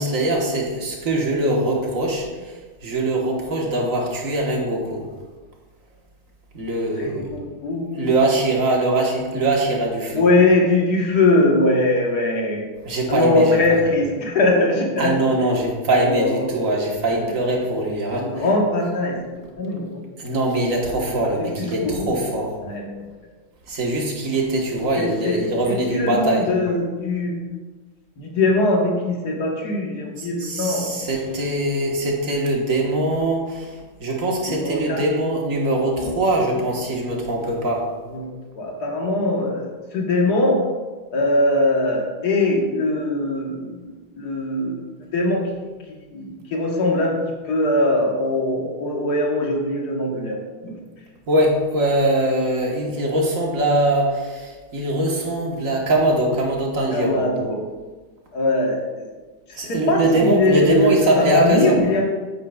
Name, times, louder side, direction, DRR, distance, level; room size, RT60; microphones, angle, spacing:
voice 1, 0.0-5.1 6.5-7.3 8.0-10.3 12.8-13.8 15.0-18.4 20.2-22.5 23.7-26.4 30.2-37.9 51.3-57.2 59.6-61.8, right 1 dB, 45° right, -1 dB, 1.6 m, -22 dB
voice 2, 6.9-8.1 10.1-12.6 13.1-15.1 16.0-16.4 17.1-17.3 18.2-19.2 19.6-20.0 21.4-22.1 22.6-22.9 25.0-27.4 28.2-30.9 34.4-35.0 36.0-36.2 38.1-40.6 41.1-44.8 45.1-45.5 46.1-47.2 47.5-50.7 56.9-57.6 58.3-59.1 59.5-62.0, left 2 dB, 55° left, -1 dB, 1.8 m, -21 dB
9.3 x 8.3 x 2.4 m, 1.3 s
omnidirectional pair, 2.2 m